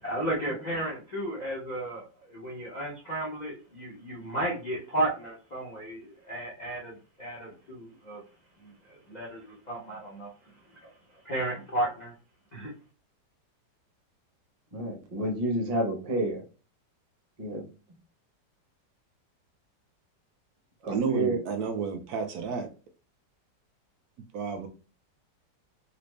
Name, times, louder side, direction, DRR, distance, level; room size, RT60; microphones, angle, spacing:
voice 1, 0.0-8.2 8.6-10.3 11.2-12.1 12.5-12.7, right 1 dB, 80° left, -6 dB, 0.4 m, -33 dB
voice 2, 14.7-16.4 17.4-17.6 20.8-21.4, right 1 dB, 30° right, -1 dB, 0.6 m, -29 dB
voice 3, 20.9-22.7 24.3-24.7, right 6 dB, 70° right, 6 dB, 0.9 m, -31 dB
3.9 x 2.0 x 3.2 m, 0.34 s
omnidirectional pair, 1.9 m